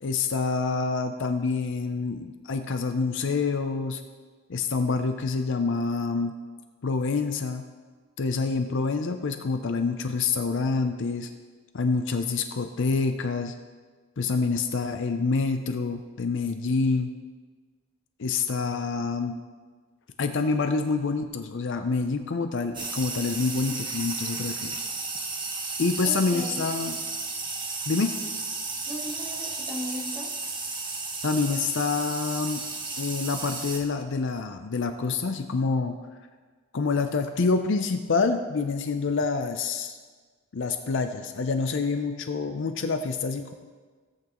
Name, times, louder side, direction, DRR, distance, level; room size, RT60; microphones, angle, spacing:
voice 1, 0.0-4.0 4.5-6.3 6.8-7.6 8.2-11.3 11.7-13.5 14.2-17.1 18.2-19.4 20.2-24.8 25.8-27.0 27.9-28.1 31.2-32.6 33.0-36.0 36.7-40.0 40.5-43.5, left 4 dB, 55° left, 7 dB, 0.5 m, -27 dB
sound 1, 22.7-33.8, right 3 dB, 20° right, 1.1 m, -33 dB
voice 2, 26.0-26.6 28.9-30.3, equal, ahead, -3 dB, 1.4 m, -37 dB
17.0 x 8.4 x 3.0 m, 1.5 s
head